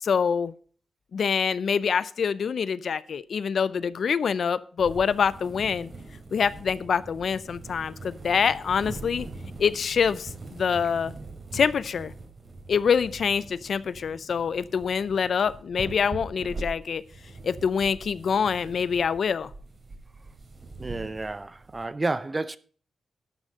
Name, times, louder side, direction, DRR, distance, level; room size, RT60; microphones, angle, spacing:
voice 1, 0.0-0.5 1.1-5.9 6.3-9.3 9.6-11.1 11.5-12.1 12.7-17.0 17.4-19.5, left 6 dB, 65° left, 0.5 m, -25 dB
sound 1, 4.8-21.8, right 3 dB, 40° right, 3.2 m, -42 dB
voice 2, 20.8-22.6, right 2 dB, 25° right, 0.6 m, -30 dB
11.5 x 6.2 x 5.3 m
cardioid pair, 95°, 0 cm